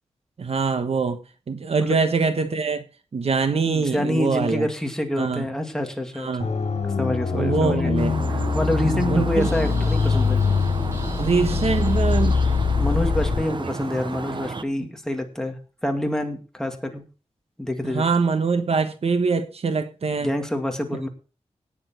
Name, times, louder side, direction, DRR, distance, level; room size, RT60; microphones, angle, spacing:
voice 1, 0.4-1.2 1.5-2.8 3.1-4.7 5.2-5.5 6.2-6.5 7.3-8.1 9.1-9.5 11.2-12.4 14.8-14.9 17.8-20.3, right 4 dB, 60° right, 1.2 m, -23 dB
voice 2, 3.7-6.3 6.8-7.9 8.3-10.4 12.8-15.6 15.8-17.0 17.6-18.0 20.2-21.1, left 1 dB, 5° left, 2.3 m, -27 dB
sound 1, 6.4-13.4, left 5 dB, 75° left, 2.9 m, -23 dB
sound 2, 8.0-14.6, right 4 dB, 45° right, 0.9 m, -32 dB
sound 3, 9.4-13.1, equal, 25° right, 5.3 m, -45 dB
17.5 x 7.2 x 4.4 m
wide cardioid pair, 150°, 12 cm